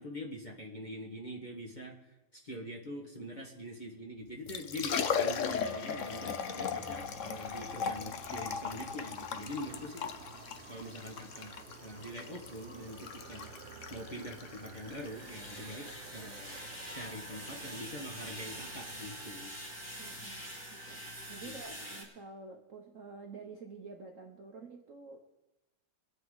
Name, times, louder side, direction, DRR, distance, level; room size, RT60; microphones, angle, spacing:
voice 1, 0.0-10.1 10.7-15.9 16.1-16.6 16.9-19.5 21.4-22.0, equal, 25° left, 0 dB, 1.4 m, -44 dB
Liquid, 4.3-21.6, left 6 dB, 70° left, 0.7 m, -39 dB
sound 1, 5.6-22.0, right 1 dB, 5° left, 3.6 m, -48 dB
sound 2, 6.9-19.4, right 10 dB, 80° right, 1.5 m, -54 dB
voice 2, 20.0-21.0 21.3-25.2, right 4 dB, 50° right, 2 dB, 1.0 m, -49 dB
25.0 x 8.3 x 4.0 m, 0.98 s
omnidirectional pair, 2.4 m